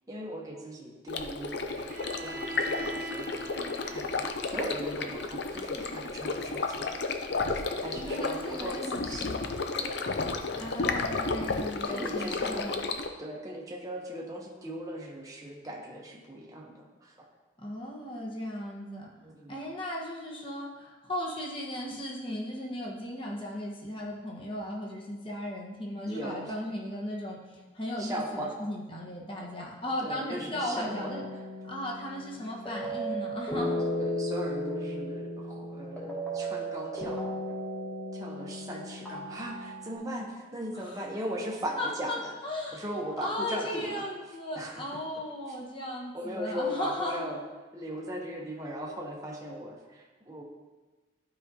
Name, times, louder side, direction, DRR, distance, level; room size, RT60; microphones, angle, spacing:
voice 1, 0.1-6.9 7.2-9.4 9.8-10.1 11.9-12.7 13.2-17.3 19.2-19.6 26.1-26.5 28.0-28.5 30.0-31.1 34.0-37.2 37.5-37.6 38.1-42.3 42.7-44.0 44.6-44.8 46.1-47.4 47.7-50.4, equal, 15° right, -2 dB, 0.8 m, -38 dB
Stream, 1.1-13.1, left 3 dB, 55° left, 0.5 m, -32 dB
Bowed string instrument, 1.9-5.8, right 1 dB, 45° right, 0.6 m, -42 dB
voice 2, 7.9-9.4 10.5-12.9 17.6-19.1 19.5-31.2 31.6-33.8 40.7-41.0 41.8-42.2 42.4-42.8 43.2-47.2, left 1 dB, 25° left, -3 dB, 1.2 m, -36 dB
sound 1, 30.8-40.0, equal, 10° left, 1.4 m, -35 dB
11.5 x 4.9 x 2.8 m, 1.3 s
head